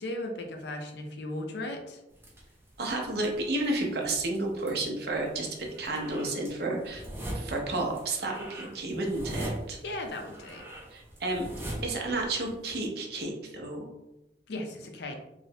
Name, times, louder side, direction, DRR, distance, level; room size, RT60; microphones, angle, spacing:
voice 1, 0.0-2.0 9.8-10.7 14.5-15.1, left 1 dB, 70° left, 4 dB, 0.5 m, -36 dB
sound 1, 2.1-12.8, right 1 dB, 15° right, 0.5 m, -42 dB
voice 2, 2.8-7.0 7.3-9.8 10.9-11.5 11.8-13.9, right 2 dB, 60° right, 1 dB, 0.5 m, -31 dB
3.1 x 2.0 x 2.7 m, 0.93 s
head